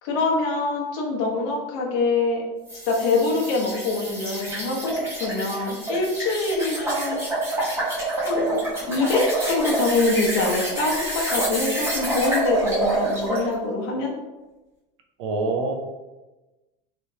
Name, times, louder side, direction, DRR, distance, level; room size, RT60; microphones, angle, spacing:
voice 1, 0.0-2.4 2.8-7.2 8.2-8.6 8.9-14.1, left 3 dB, 60° left, 0 dB, 0.9 m, -24 dB
sound 1, 2.7-13.5, right 2 dB, 15° right, 1.2 m, -27 dB
voice 2, 15.2-15.7, right 3 dB, 80° right, 3 dB, 0.6 m, -25 dB
3.2 x 2.9 x 2.7 m, 1.1 s
supercardioid pair, 155°, 15 cm